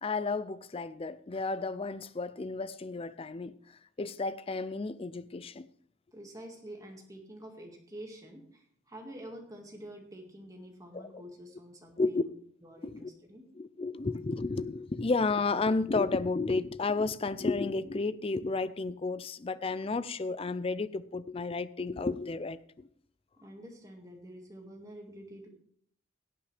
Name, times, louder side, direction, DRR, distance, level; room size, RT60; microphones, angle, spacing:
voice 1, 0.0-3.5 4.0-5.7 10.9-11.1 12.0-12.2 12.8-13.1 13.6-22.9, left 3 dB, 25° left, 16 dB, 0.4 m, -32 dB
voice 2, 6.1-12.3 12.6-13.5 23.4-25.5, right 1 dB, 15° right, 1 dB, 1.9 m, -48 dB
17.0 x 8.8 x 3.4 m, 0.65 s
head